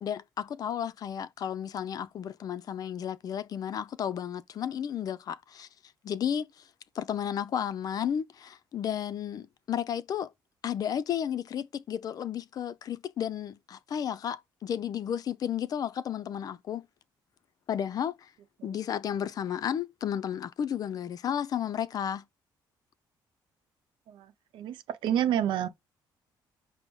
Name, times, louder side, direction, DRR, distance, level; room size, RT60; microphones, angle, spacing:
voice 1, 0.0-5.7 6.0-6.7 6.9-10.3 10.6-16.9 17.7-18.3 18.6-22.2, left 9 dB, 50° left, 0.4 m, -33 dB
voice 2, 25.0-25.7, right 10 dB, 80° right, 0.6 m, -27 dB
5.2 x 2.1 x 4.7 m
cardioid pair, 105°, 8 cm